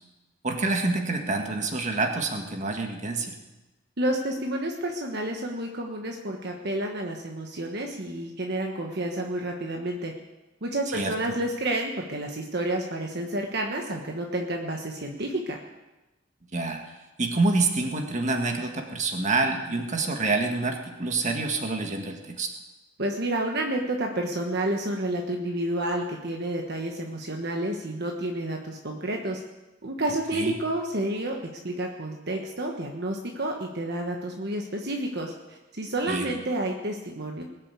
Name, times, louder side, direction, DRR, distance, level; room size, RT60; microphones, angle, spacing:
voice 1, 0.4-3.4 10.9-11.1 16.5-22.5 30.3-30.5 36.1-36.3, right 3 dB, 40° right, 3 dB, 1.8 m, -27 dB
voice 2, 4.0-10.1 10.6-15.6 23.0-29.4 29.8-31.4 31.6-37.4, right 1 dB, 55° right, 2 dB, 1.4 m, -30 dB
20.5 x 7.5 x 8.3 m, 1.1 s
head